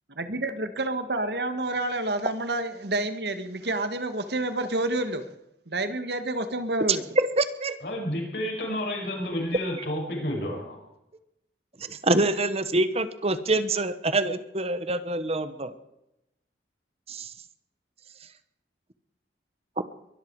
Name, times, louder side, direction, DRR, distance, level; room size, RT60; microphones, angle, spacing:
voice 1, 0.2-5.2 5.7-7.0, right 2 dB, 65° right, 9 dB, 1.7 m, -29 dB
voice 2, 7.2-7.8 11.9-15.7 17.1-17.3, right 2 dB, 35° right, 12 dB, 1.1 m, -25 dB
voice 3, 7.8-10.8, left 1 dB, 65° left, 0 dB, 6.4 m, -30 dB
22.5 x 13.0 x 4.8 m, 0.86 s
head